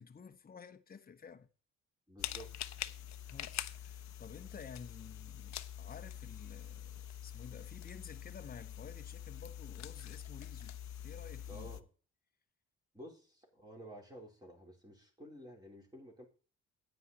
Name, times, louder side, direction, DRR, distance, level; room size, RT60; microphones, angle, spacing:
voice 1, 0.0-1.5 3.3-10.8 11.0-11.8, left 6 dB, 30° left, 1.0 m, -52 dB
voice 2, 2.1-2.5 11.5-11.9 12.9-16.3, equal, 15° right, 3.9 m, -52 dB
sound 1, 2.2-11.8, left 11 dB, 65° left, 0.8 m, -45 dB
9.4 x 9.1 x 4.2 m
cardioid pair, 90°, 30 cm